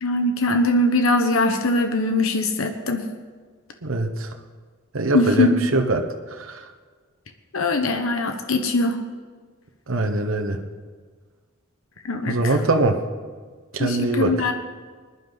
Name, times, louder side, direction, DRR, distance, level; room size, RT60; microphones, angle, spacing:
voice 1, 0.0-3.0 5.1-5.7 7.5-9.0 12.0-12.6 13.8-14.5, left 2 dB, 90° left, 6 dB, 1.1 m, -21 dB
voice 2, 3.8-4.3 4.9-6.0 6.4-6.6 9.9-10.6 12.2-13.0 13.7-14.5, right 2 dB, 80° right, 4 dB, 1.1 m, -22 dB
21.0 x 11.0 x 4.0 m, 1.5 s
head